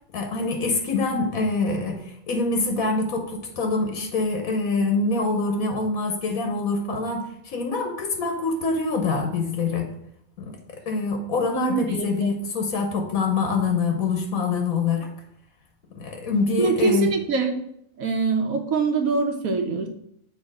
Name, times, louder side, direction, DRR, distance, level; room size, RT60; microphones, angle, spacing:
voice 1, 0.1-2.0 2.3-9.9 10.4-10.6 10.9-15.1 15.9-17.1, left 3 dB, 90° left, 3 dB, 1.4 m, -25 dB
voice 2, 11.6-12.3 16.6-17.5 18.0-19.9, right 4 dB, 85° right, 4 dB, 1.3 m, -24 dB
6.9 x 3.3 x 4.8 m, 0.72 s
omnidirectional pair, 1.4 m